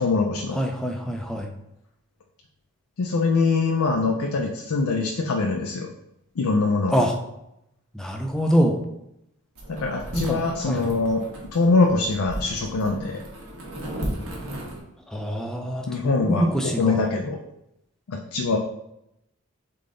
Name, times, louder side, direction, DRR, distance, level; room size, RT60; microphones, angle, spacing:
voice 1, 0.0-0.6 3.0-5.9 6.4-7.0 9.7-11.3 11.5-13.2 15.9-17.4 18.1-18.6, left 3 dB, 80° left, 2 dB, 0.5 m, -23 dB
voice 2, 0.5-1.5 6.9-7.2 7.9-8.8 10.1-10.9 15.1-17.1, equal, 5° left, 2 dB, 0.4 m, -25 dB
sound 1, 9.5-14.8, right 1 dB, 75° right, 1.3 m, -35 dB
3.8 x 3.8 x 3.7 m, 0.84 s
head